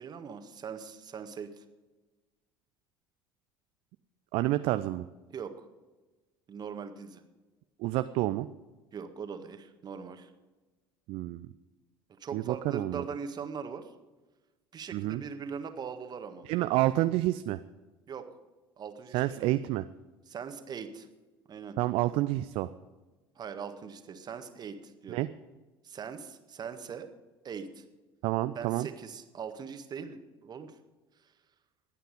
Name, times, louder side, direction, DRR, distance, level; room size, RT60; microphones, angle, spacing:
voice 1, 0.0-1.6 5.3-5.7 6.5-7.2 8.9-10.3 12.2-13.9 14.7-16.5 18.1-18.2 18.8-19.5 20.3-21.1 21.5-21.8 23.3-25.2 25.8-27.1 27.4-27.8 28.5-30.8 31.2-31.3, right 6 dB, 35° right, 8 dB, 1.7 m, -41 dB
voice 2, 4.3-5.1 7.8-8.5 11.1-11.5 12.3-13.0 14.9-15.2 16.5-17.6 19.1-19.9 21.8-22.7 25.1-25.3 28.2-28.9, right 16 dB, 50° right, 12 dB, 0.5 m, -29 dB
20.5 x 9.1 x 5.2 m, 1.2 s
figure-of-eight pair, 65°, 12 cm